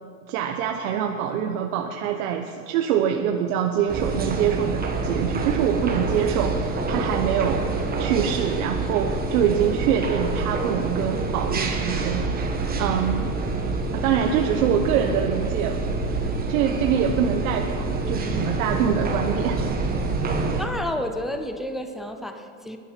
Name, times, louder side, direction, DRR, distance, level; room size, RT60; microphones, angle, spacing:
voice 1, 0.3-7.7 8.0-12.3 12.8-13.3 13.9-15.8 16.2-19.6, right 8 dB, 65° right, 3 dB, 1.1 m, -25 dB
sound 1, 3.9-20.7, right 3 dB, 20° right, 1.4 m, -27 dB
voice 2, 20.6-22.8, left 1 dB, ahead, 6 dB, 0.5 m, -30 dB
20.5 x 11.0 x 4.5 m, 2.4 s
supercardioid pair, 135°, 46 cm